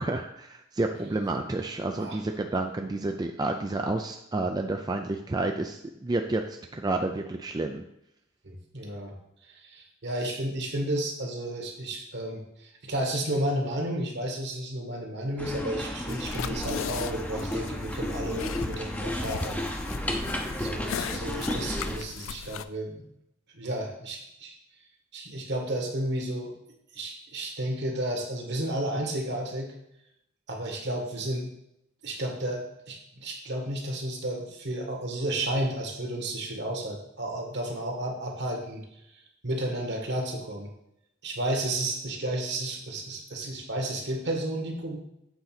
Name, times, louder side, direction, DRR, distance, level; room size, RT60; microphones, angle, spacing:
voice 1, 0.0-6.4 6.7-7.8, right 2 dB, 20° right, 4 dB, 0.4 m, -30 dB
voice 2, 8.4-9.1 9.4-19.6 20.6-23.0 23.5-24.6 25.1-26.5 26.9-29.7 30.5-31.5 32.0-38.9 39.1-40.7 41.2-45.0, right 1 dB, 60° right, 2 dB, 1.7 m, -32 dB
sound 1, 15.4-22.0, left 1 dB, 10° left, 0.7 m, -32 dB
sound 2, 16.1-22.6, left 8 dB, 80° left, 0.4 m, -38 dB
8.0 x 4.0 x 5.9 m, 0.81 s
head